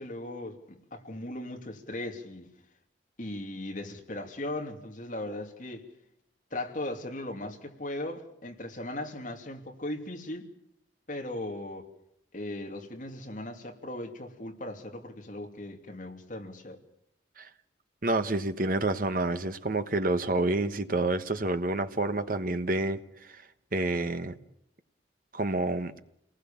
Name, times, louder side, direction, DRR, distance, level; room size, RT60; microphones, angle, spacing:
voice 1, 0.0-2.5 3.2-5.9 6.5-10.5 11.1-11.9 12.3-16.8, left 1 dB, 45° left, 2.9 m, -38 dB
voice 2, 18.0-23.4 23.7-24.3 25.3-25.9, right 2 dB, 50° right, 1.3 m, -28 dB
29.0 x 19.5 x 7.3 m
head